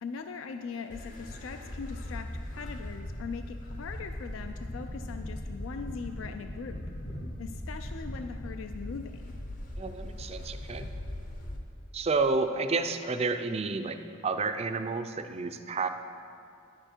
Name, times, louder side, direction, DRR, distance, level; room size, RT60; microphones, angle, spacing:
voice 1, 0.0-6.8 7.4-9.3, left 5 dB, 70° left, 7 dB, 0.4 m, -40 dB
sound 1, 0.9-11.6, left 1 dB, 40° left, 0.8 m, -39 dB
voice 2, 9.8-10.9 11.9-14.0 14.2-15.9, right 3 dB, 30° right, 8 dB, 0.4 m, -30 dB
10.0 x 6.8 x 4.4 m, 2.5 s
head